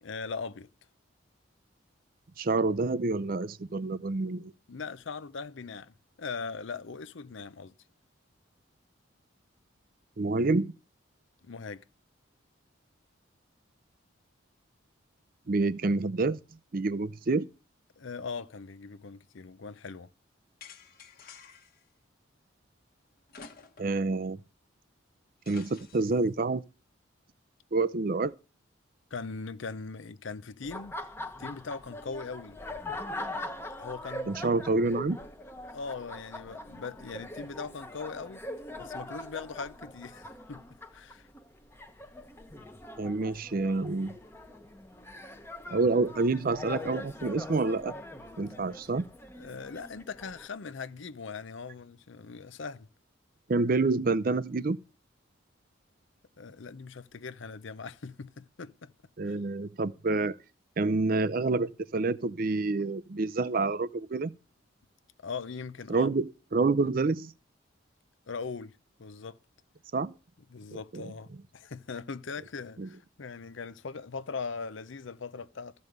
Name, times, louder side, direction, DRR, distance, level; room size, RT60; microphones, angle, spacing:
voice 1, 0.0-0.7 4.7-7.7 11.4-11.8 18.0-20.1 29.1-30.9 31.4-32.6 33.7-34.6 35.7-38.4 38.8-40.6 40.9-41.3 49.3-52.9 56.4-58.9 59.3-59.4 65.2-66.1 68.3-69.4 70.5-75.7, left 4 dB, 65° left, 0.6 m, -40 dB
voice 2, 2.4-4.5 10.2-10.7 15.5-16.4 16.7-17.5 23.8-24.4 25.5-26.6 27.7-28.3 34.3-35.2 43.0-44.2 45.7-48.0 48.4-49.1 53.5-54.8 59.2-60.4 60.8-64.3 65.9-67.3 69.9-70.1 70.9-71.0 72.8-72.9, right 3 dB, 45° right, 0.5 m, -28 dB
sound 1, 20.6-21.8 23.3-24.0 24.4-24.5 25.5-26.3, left 5 dB, 45° left, 1.3 m, -51 dB
Laughter, 30.6-50.5, left 1 dB, 10° left, 0.9 m, -42 dB
14.0 x 5.4 x 7.9 m
head